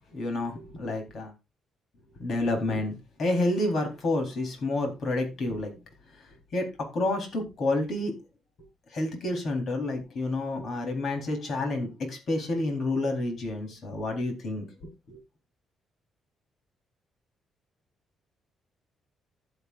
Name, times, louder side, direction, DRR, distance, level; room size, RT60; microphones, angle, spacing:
voice 1, 0.1-1.3 2.2-5.7 6.5-8.1 8.9-14.7 15.1-15.2, left 2 dB, 55° left, 4 dB, 4.1 m, -29 dB
16.0 x 8.0 x 2.6 m, 0.25 s
cardioid pair, 90°, 0 cm